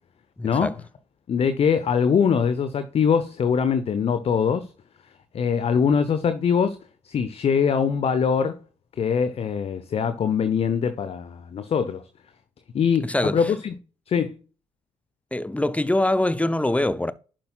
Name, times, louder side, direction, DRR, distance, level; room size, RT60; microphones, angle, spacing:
voice 1, 0.4-0.7 13.0-13.5 15.3-17.1, left 1 dB, 10° left, 0.7 m, -24 dB
voice 2, 1.3-4.7 5.3-6.8 7.0-8.6 9.0-12.0 12.7-13.7 14.1-14.4, left 6 dB, 40° left, 0.8 m, -22 dB
11.0 x 7.5 x 2.4 m
figure-of-eight pair, 45°, 15 cm